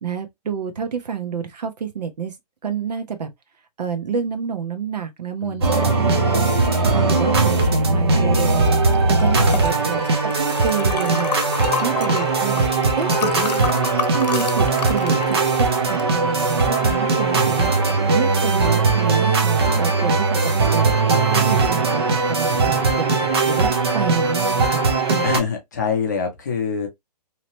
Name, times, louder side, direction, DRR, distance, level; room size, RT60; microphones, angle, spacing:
voice 1, 0.0-2.3 2.6-3.3 3.8-6.5 6.8-8.8 9.2-11.3 11.8-12.6 13.0-13.7 14.1-17.7 18.1-21.0 21.3-24.9, right 7 dB, 75° right, 0.8 m, -28 dB
voice 2, 5.4-5.9 9.4-9.6 22.5-22.9 25.2-26.9, left 6 dB, 25° left, 0.6 m, -26 dB
sound 1, 5.6-25.4, right 3 dB, 40° right, 0.6 m, -19 dB
Liquid, 8.6-18.8, left 6 dB, 80° left, 0.7 m, -31 dB
2.8 x 2.1 x 2.9 m
hypercardioid pair, 175°, 21 cm